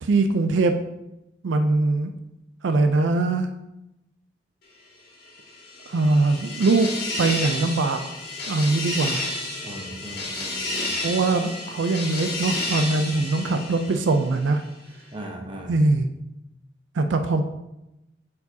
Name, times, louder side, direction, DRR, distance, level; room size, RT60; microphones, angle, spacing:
voice 1, 0.0-0.8 1.4-2.1 2.6-3.5 5.9-6.9 7.2-8.0 8.5-9.3 11.0-14.6 15.7-16.1 16.9-17.4, right 3 dB, 75° right, 7 dB, 0.4 m, -22 dB
sound 1, 5.4-14.5, left 2 dB, 55° left, 1.8 m, -31 dB
voice 2, 9.6-11.0 15.1-15.8, right 1 dB, 25° right, 1 dB, 0.9 m, -38 dB
8.3 x 4.7 x 2.7 m, 0.91 s
head